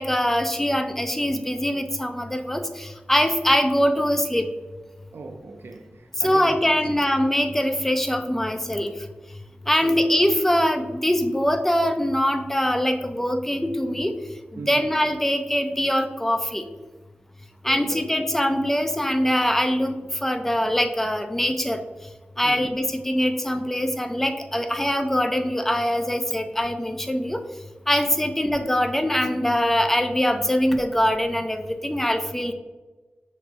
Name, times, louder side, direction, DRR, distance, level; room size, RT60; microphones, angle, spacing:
voice 1, 0.0-4.5 6.2-8.9 9.7-14.1 14.5-16.7 17.6-21.8 22.4-27.4 27.9-32.5, equal, 10° left, 0.4 m, -23 dB
voice 2, 5.1-6.7 9.8-10.0 14.6-14.9 17.7-18.0 22.4-22.7 28.1-28.2, right 3 dB, 75° right, 0.5 m, -38 dB
5.9 x 3.0 x 2.6 m
wide cardioid pair, 70°, 4 cm